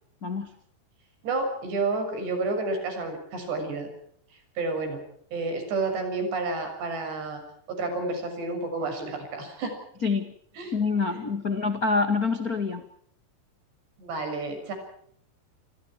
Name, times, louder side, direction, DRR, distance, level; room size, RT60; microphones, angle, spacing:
voice 1, 1.2-3.9 4.6-5.0 5.3-7.4 7.7-9.8 10.6-10.7 11.1-11.2 14.0-14.7, right 3 dB, 75° right, 6 dB, 8.8 m, -30 dB
voice 2, 10.0-10.3 10.7-12.8, left 4 dB, 45° left, 8 dB, 1.1 m, -26 dB
29.0 x 25.5 x 4.7 m, 0.65 s
omnidirectional pair, 4.9 m